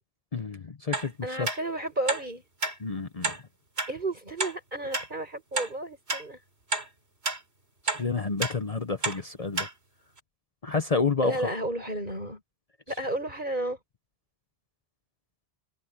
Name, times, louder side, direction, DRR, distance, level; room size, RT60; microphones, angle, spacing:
voice 1, 0.3-1.5 2.8-3.4 8.0-9.7 10.6-11.5, left 4 dB, 40° left, 1.0 m, -29 dB
sound 1, 0.9-1.1 1.4-1.6 2.1-2.2 2.6-2.7 3.2-3.4 3.8-3.9 4.4-4.5 4.9-5.1 5.6-5.7 6.1-6.2 6.7-6.9 7.2-7.4 7.9-8.0 8.4-8.5 9.0-9.2 9.6-9.7 10.2-10.3, right 3 dB, 90° right, 4.4 m, -29 dB
voice 2, 1.2-2.4 3.9-6.4 11.2-12.4 12.9-13.8, right 1 dB, 50° right, 6.5 m, -32 dB
omnidirectional pair, 1.1 m